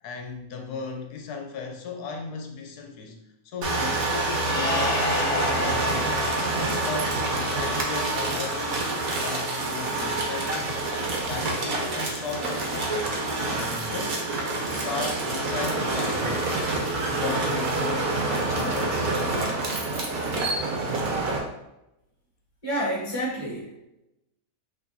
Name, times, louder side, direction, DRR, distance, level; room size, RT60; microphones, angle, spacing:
voice 1, 0.0-6.3 6.8-10.7 11.2-13.2 13.4-14.2 14.6-16.4 17.0-19.5, left 4 dB, 90° left, 3 dB, 1.2 m, -36 dB
sound 1, 3.6-21.4, right 2 dB, 65° right, 1.3 m, -27 dB
sound 2, 4.4-8.0, left 2 dB, 45° left, 0.8 m, -30 dB
voice 2, 22.6-23.8, equal, 20° left, -5 dB, 1.6 m, -29 dB
5.9 x 3.2 x 2.7 m, 0.89 s
omnidirectional pair, 1.6 m